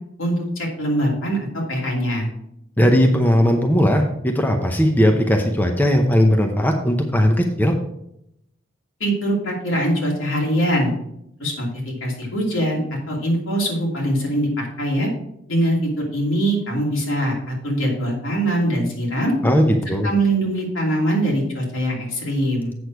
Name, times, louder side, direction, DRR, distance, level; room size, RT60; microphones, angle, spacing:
voice 1, 0.2-2.3 9.0-10.9 11.4-11.7 12.0-12.8 13.1-15.1 15.5-19.3 19.8-22.7, right 1 dB, 75° left, -2 dB, 2.9 m, -22 dB
voice 2, 2.8-7.8 19.4-20.1, equal, 10° left, 3 dB, 0.7 m, -18 dB
8.0 x 6.5 x 4.7 m, 0.78 s
head